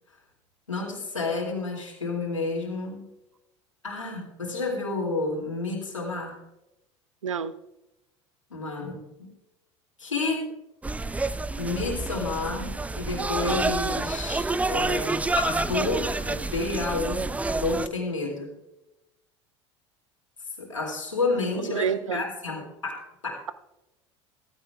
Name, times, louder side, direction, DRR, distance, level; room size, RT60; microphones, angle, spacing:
voice 1, 0.7-3.1 3.8-6.4 8.5-9.3 10.0-10.5 11.6-18.5 20.6-23.4, left 3 dB, 90° left, 2.5 m, -30 dB
voice 2, 7.2-7.6 21.6-22.2, right 7 dB, 85° right, 0.5 m, -28 dB
sound 1, 10.8-17.9, right 3 dB, 10° right, 0.5 m, -28 dB
sound 2, 11.4-11.5 13.1-13.2 15.3-17.8, left 7 dB, 40° left, 3.7 m, -39 dB
15.5 x 14.5 x 2.4 m
figure-of-eight pair, 75°, 16 cm